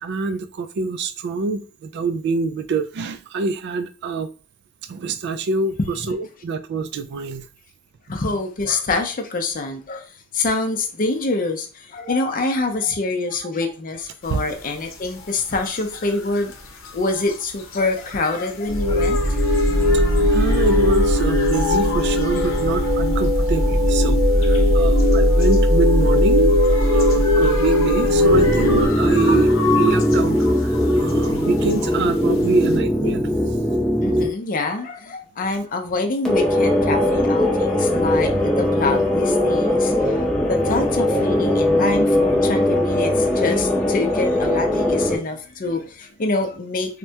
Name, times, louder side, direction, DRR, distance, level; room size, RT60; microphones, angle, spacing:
voice 1, 0.0-4.3 4.9-5.8 6.1-7.4 12.0-12.1 14.3-14.4 20.2-24.2 24.5-29.5 29.7-33.2, right 4 dB, 55° right, 0.3 m, -25 dB
voice 2, 5.8-6.1 8.1-10.0 10.3-16.6 16.9-19.4 34.0-40.2 40.5-47.0, left 3 dB, 45° left, 0.5 m, -25 dB
sound 1, 14.2-32.8, left 5 dB, 80° left, 0.7 m, -34 dB
sound 2, 18.7-28.9, left 1 dB, 75° right, 0.7 m, -17 dB
sound 3, 28.3-34.3 36.3-45.2, left 1 dB, ahead, 0.6 m, -20 dB
3.3 x 2.1 x 2.7 m
head